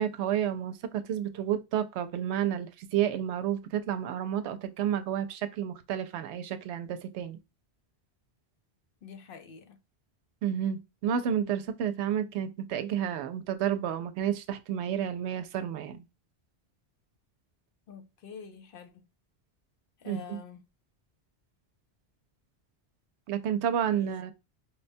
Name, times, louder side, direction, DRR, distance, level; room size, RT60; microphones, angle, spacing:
voice 1, 0.0-7.4 10.4-16.0 20.1-20.4 23.3-24.3, right 9 dB, 85° right, 0.8 m, -30 dB
voice 2, 9.0-9.8 17.9-19.1 20.0-20.6 23.9-24.1, left 6 dB, 65° left, 0.7 m, -47 dB
4.5 x 2.1 x 2.5 m
omnidirectional pair, 1.1 m